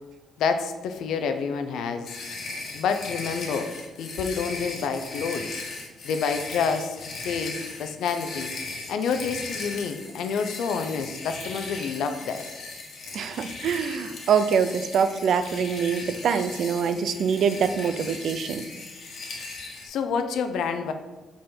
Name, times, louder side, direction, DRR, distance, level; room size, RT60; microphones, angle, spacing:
voice 1, 0.4-2.1 2.7-3.7 4.0-5.6 6.0-7.0 7.2-8.5 8.9-12.4 19.8-20.9, left 5 dB, 75° left, 7 dB, 0.5 m, -28 dB
sound 1, 2.0-19.9, left 3 dB, 55° left, 1.4 m, -38 dB
voice 2, 13.1-18.7, right 6 dB, 60° right, 11 dB, 0.4 m, -24 dB
5.5 x 4.3 x 5.4 m, 1.2 s
cardioid pair, 140°, 0 cm